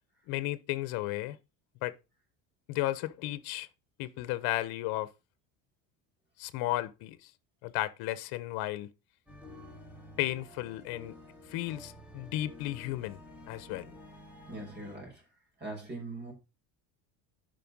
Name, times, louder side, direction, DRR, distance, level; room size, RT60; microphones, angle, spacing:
voice 1, 0.3-1.4 1.8-1.9 2.7-3.7 4.0-5.1 6.4-7.2 7.6-8.9 10.2-11.1 11.5-13.2 13.5-13.9, left 16 dB, 65° left, 1.1 m, -34 dB
sound 1, 9.3-15.0, left 1 dB, 5° right, 3.1 m, -51 dB
voice 2, 14.5-15.2 15.6-16.3, right 2 dB, 25° right, 5.7 m, -41 dB
11.0 x 5.6 x 5.4 m
cardioid pair, 150°, 41 cm